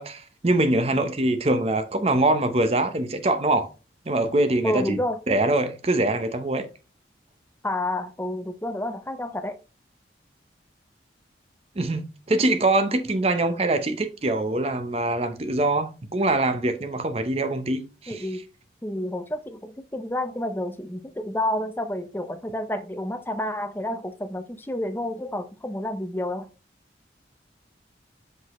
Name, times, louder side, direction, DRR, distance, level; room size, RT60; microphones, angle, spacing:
voice 1, 0.0-3.7 4.1-5.0 5.3-6.7 11.8-18.3, right 2 dB, 35° right, 0.7 m, -23 dB
voice 2, 4.6-5.2 7.6-9.5 18.1-18.4 18.8-26.5, left 1 dB, 10° left, 0.6 m, -30 dB
5.8 x 5.3 x 3.0 m
head